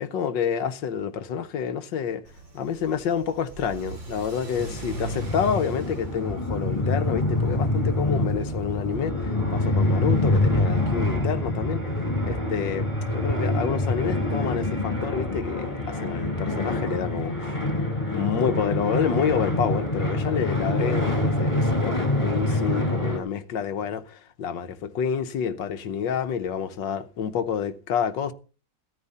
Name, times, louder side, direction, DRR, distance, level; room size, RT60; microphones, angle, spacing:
voice 1, 0.0-2.2 2.5-11.8 12.2-12.9 13.1-17.6 18.1-28.3, left 7 dB, 80° left, 1.7 m, -28 dB
Car / Accelerating revving vroom, 2.2-9.0, right 3 dB, 85° right, 4.6 m, -40 dB
sound 1, 4.6-23.2, left 1 dB, 15° left, 5.3 m, -26 dB
Bowed string instrument, 8.9-15.0, right 3 dB, 10° right, 4.6 m, -46 dB
15.5 x 13.5 x 4.2 m
omnidirectional pair, 2.0 m